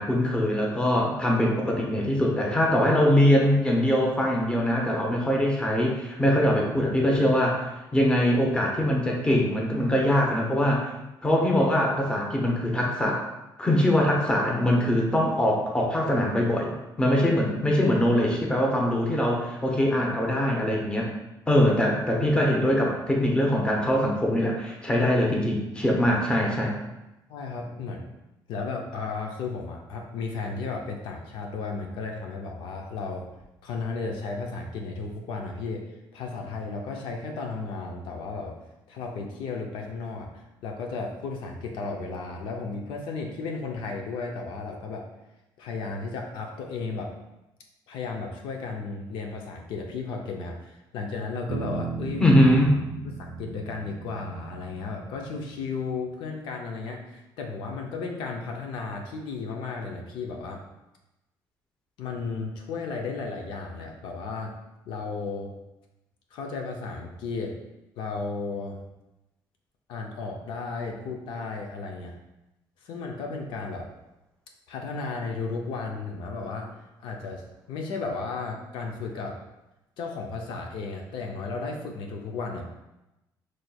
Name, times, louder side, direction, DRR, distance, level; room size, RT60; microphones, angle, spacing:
voice 1, 0.0-10.9 11.2-13.2 13.6-16.7 17.0-21.1 21.5-26.7 52.2-52.8, left 1 dB, 10° left, -1 dB, 0.7 m, -22 dB
voice 2, 27.3-28.1 28.5-33.3 33.6-35.8 36.1-38.5 38.9-45.0 45.6-47.1 47.9-52.2 53.2-60.7 62.0-64.5 64.9-65.5 66.3-67.5 68.0-68.8 69.9-72.1 72.8-73.9 74.7-76.7 77.0-79.4 80.0-82.7, left 4 dB, 90° left, 1 dB, 0.5 m, -34 dB
Bass guitar, 51.5-55.9, right 5 dB, 60° right, 0.5 m, -37 dB
4.2 x 3.2 x 2.3 m, 0.96 s
cardioid pair, 120°, 8 cm